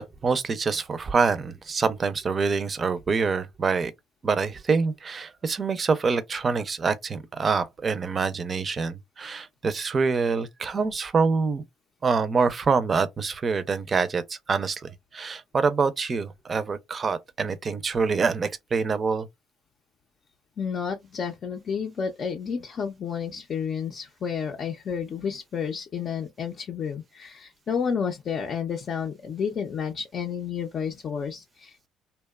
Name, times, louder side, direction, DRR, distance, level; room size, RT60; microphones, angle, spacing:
voice 1, 0.0-3.9 4.2-11.6 12.0-19.3, right 4 dB, 35° right, 0.5 m, -26 dB
voice 2, 20.6-31.9, left 6 dB, 50° left, 0.5 m, -31 dB
2.8 x 2.2 x 2.2 m
supercardioid pair, 85°, 0 cm